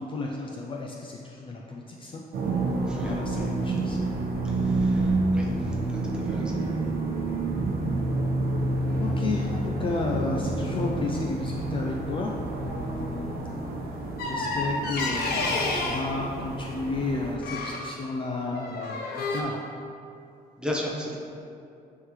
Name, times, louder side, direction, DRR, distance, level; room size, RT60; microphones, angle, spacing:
voice 1, 0.0-2.2 3.0-4.0 9.0-13.4 14.2-19.6, left 3 dB, 30° left, 0 dB, 0.4 m, -32 dB
sound 1, 2.3-17.4, right 2 dB, 70° right, 0.9 m, -29 dB
voice 2, 2.9-3.5 4.4-6.6 20.6-21.2, left 1 dB, 5° right, -3 dB, 0.8 m, -36 dB
sound 2, 14.2-16.1 17.4-17.8 18.5-19.4, left 3 dB, 80° left, 0.9 m, -30 dB
9.3 x 3.7 x 3.1 m, 2.5 s
cardioid pair, 165°, 16 cm